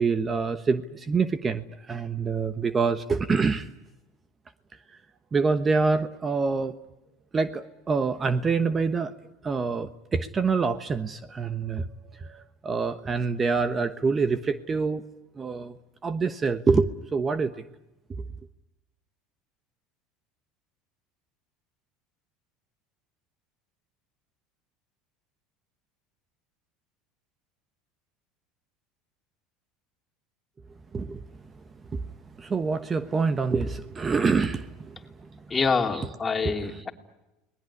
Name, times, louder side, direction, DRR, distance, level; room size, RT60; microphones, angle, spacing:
voice 1, 0.0-3.7 4.9-5.0 5.3-6.7 7.3-9.1 9.4-11.9 12.1-15.0 15.4-15.8 16.0-17.6 30.9-31.2 31.9-32.0 32.4-35.0 35.2-35.3 35.9-36.1 36.4-36.5, right 4 dB, 25° right, 11 dB, 1.1 m, -26 dB
voice 2, 35.5-36.9, left 4 dB, 25° left, 3 dB, 3.0 m, -26 dB
30.0 x 20.0 x 9.8 m, 1.0 s
supercardioid pair, 95°, 0 cm